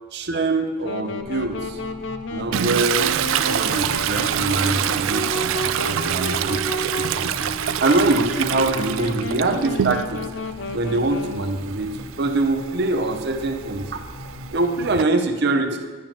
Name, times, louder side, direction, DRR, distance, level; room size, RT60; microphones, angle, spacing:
voice 1, 0.1-1.8 2.3-3.1 3.5-6.7 7.0-10.3 10.7-13.8 14.5-15.8, right 2 dB, 55° right, 4 dB, 0.7 m, -24 dB
Wind instrument woodwind instrument, 0.8-11.7, left 2 dB, 65° left, 0.5 m, -32 dB
sound 1, 1.2-14.5, left 1 dB, 45° left, 1.4 m, -39 dB
Toilet flush, 2.5-10.3 10.7-15.0, right 10 dB, 80° right, 0.3 m, -26 dB
10.5 x 8.7 x 3.0 m, 1.3 s
head